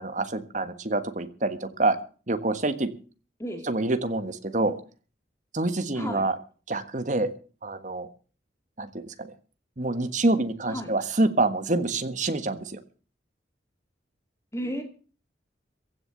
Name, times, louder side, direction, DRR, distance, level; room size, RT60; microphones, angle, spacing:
voice 1, 0.0-2.0 2.3-2.9 3.7-4.8 5.5-6.3 6.7-7.3 7.6-8.1 8.8-9.3 9.8-12.8, right 2 dB, 40° right, 10 dB, 1.5 m, -26 dB
voice 2, 5.9-6.3 10.7-10.9 14.5-14.8, equal, 15° left, 5 dB, 2.2 m, -33 dB
15.5 x 7.1 x 8.9 m, 0.39 s
head